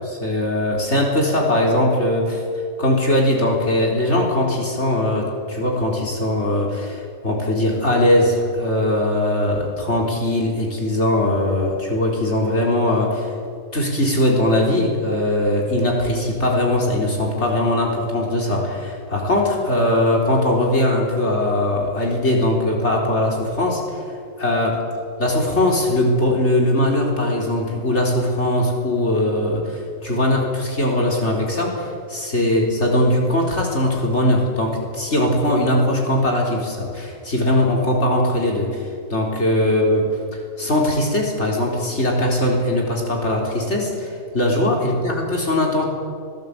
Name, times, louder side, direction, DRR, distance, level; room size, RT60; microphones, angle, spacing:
voice 1, 0.2-2.4 2.8-13.3 13.7-24.0 24.4-24.8 25.2-40.0 40.6-45.8, left 1 dB, 65° left, -1 dB, 4.3 m, -20 dB
27.5 x 16.5 x 8.6 m, 2.3 s
omnidirectional pair, 1.3 m